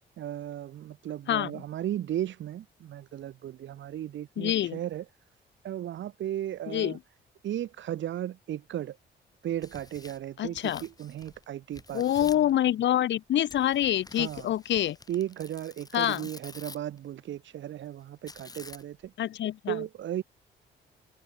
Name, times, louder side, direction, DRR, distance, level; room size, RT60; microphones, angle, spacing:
voice 1, 0.2-5.0 5.6-7.0 7.4-9.0 9.4-12.3 14.2-14.5 15.1-19.1 19.7-20.2, right 11 dB, 70° right, 1.9 m, -35 dB
voice 2, 1.3-1.6 4.4-4.8 6.7-7.0 10.4-10.8 11.9-15.0 15.9-16.3 19.2-19.8, left 12 dB, 65° left, 1.0 m, -26 dB
Tearing, 9.4-11.4 11.7-12.5 13.5-17.0 18.3-19.1, left 3 dB, 20° left, 1.9 m, -49 dB
cardioid pair, 90°, 20 cm